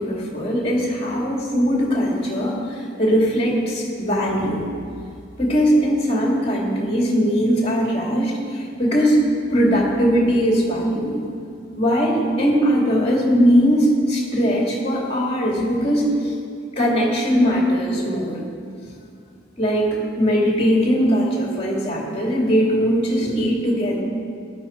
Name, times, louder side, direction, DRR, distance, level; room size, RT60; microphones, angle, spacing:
voice 1, 0.0-4.7 5.4-9.2 9.5-11.3 11.8-16.4 16.8-18.4 19.6-24.0, equal, 30° left, -2 dB, 2.4 m, -20 dB
13.0 x 11.0 x 4.5 m, 2.4 s
head